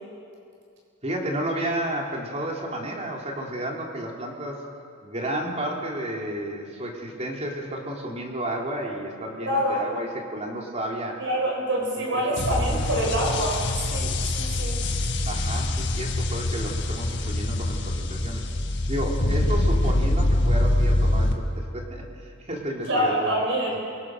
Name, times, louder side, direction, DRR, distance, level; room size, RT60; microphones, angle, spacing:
voice 1, 1.0-4.6 5.0-11.2 12.1-12.8 15.3-18.4 18.9-21.4 21.7-23.8, right 1 dB, 30° right, -1 dB, 3.6 m, -32 dB
voice 2, 9.5-9.9 11.2-14.8 22.9-23.8, equal, 60° right, -2 dB, 7.8 m, -26 dB
sound 1, 12.4-21.3, left 1 dB, 60° left, 1.9 m, -24 dB
28.5 x 24.0 x 6.3 m, 2.4 s
head